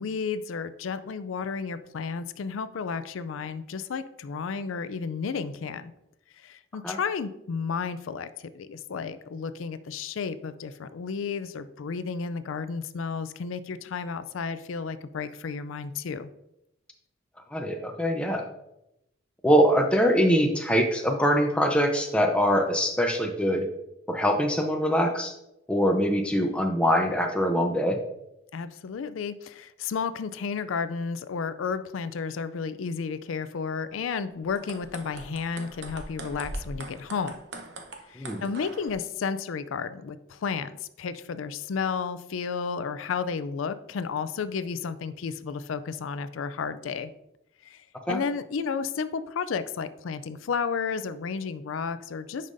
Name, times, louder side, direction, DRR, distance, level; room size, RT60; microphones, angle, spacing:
voice 1, 0.0-5.9 6.4-16.3 28.5-37.3 38.1-47.1 47.6-52.5, left 5 dB, 85° left, 13 dB, 0.4 m, -32 dB
voice 2, 17.5-18.5 19.4-23.7 24.1-25.3 25.7-28.0 38.2-38.4 48.1-48.2, equal, 5° left, 2 dB, 0.7 m, -23 dB
sound 1, 34.4-38.9, right 2 dB, 60° right, 0.9 m, -41 dB
9.5 x 5.4 x 2.6 m, 0.85 s
head